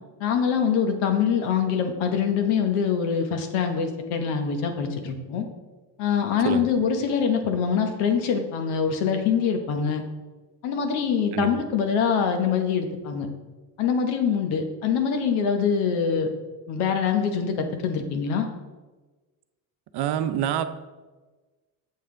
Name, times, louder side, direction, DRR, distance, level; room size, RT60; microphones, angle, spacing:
voice 1, 0.2-5.5 6.0-10.0 10.6-13.3 13.8-16.3 16.7-18.5, left 6 dB, 80° left, 5 dB, 1.1 m, -24 dB
voice 2, 19.9-20.6, right 10 dB, 55° right, 11 dB, 0.6 m, -26 dB
7.8 x 5.6 x 3.7 m, 1.3 s
cardioid pair, 115°, 48 cm